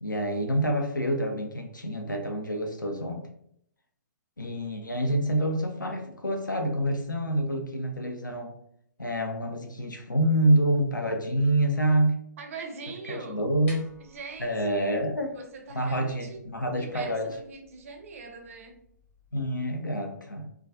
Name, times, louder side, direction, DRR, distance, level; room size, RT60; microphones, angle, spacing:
voice 1, 0.0-3.2 4.4-8.6 9.0-12.2 13.1-13.8 14.4-15.3 15.7-17.4 19.3-20.5, right 1 dB, 90° left, 4 dB, 0.4 m, -27 dB
voice 2, 12.4-13.4 14.0-15.0 15.3-16.5 16.8-18.8, right 4 dB, 50° right, 5 dB, 0.4 m, -42 dB
sound 1, 13.4-19.3, left 1 dB, 15° left, 0.5 m, -56 dB
2.3 x 2.2 x 2.5 m, 0.71 s
figure-of-eight pair, 125°, 10 cm